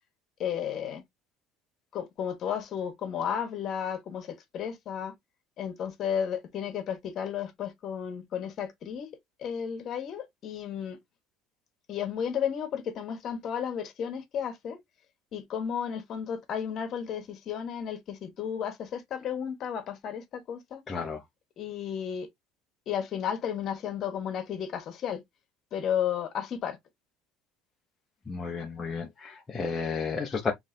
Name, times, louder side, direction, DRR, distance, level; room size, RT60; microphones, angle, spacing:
voice 1, 0.4-1.0 1.9-5.1 5.6-9.1 9.4-11.0 11.9-14.8 15.3-20.8 21.6-22.3 22.9-25.2 25.7-26.8, left 8 dB, 40° left, 1.3 m, -33 dB
voice 2, 20.9-21.2 28.3-30.5, left 5 dB, 20° left, 0.8 m, -32 dB
4.8 x 3.3 x 2.7 m
cardioid pair, 150°, 0 cm